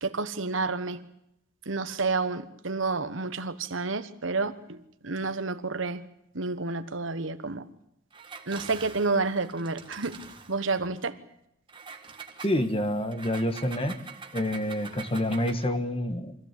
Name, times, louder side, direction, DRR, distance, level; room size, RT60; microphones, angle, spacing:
voice 1, 0.0-1.0 1.7-4.8 5.0-6.0 6.3-7.6 8.5-10.1 10.5-11.1, right 3 dB, 70° right, 1.3 m, -29 dB
Engine, 8.1-10.9 11.7-15.8, right 5 dB, 25° right, 1.6 m, -45 dB
voice 2, 12.4-14.0 14.3-16.4, left 1 dB, 30° left, 1.5 m, -28 dB
24.5 x 15.5 x 8.4 m
head